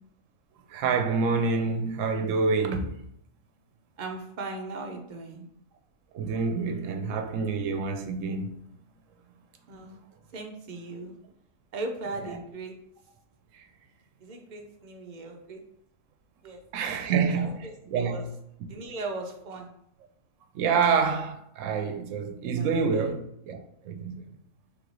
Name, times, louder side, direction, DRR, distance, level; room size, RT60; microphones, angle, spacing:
voice 1, 0.7-3.0 6.1-8.5 13.5-13.7 16.7-17.6 17.9-18.3 20.5-24.3, right 5 dB, 70° right, 0.9 m, -27 dB
voice 2, 4.0-5.5 9.7-10.0 10.3-11.2 11.7-12.8 14.2-15.6 16.4-18.3 18.7-19.7 22.5-23.1, right 2 dB, 55° right, 0.5 m, -38 dB
3.5 x 3.2 x 3.8 m
omnidirectional pair, 1.4 m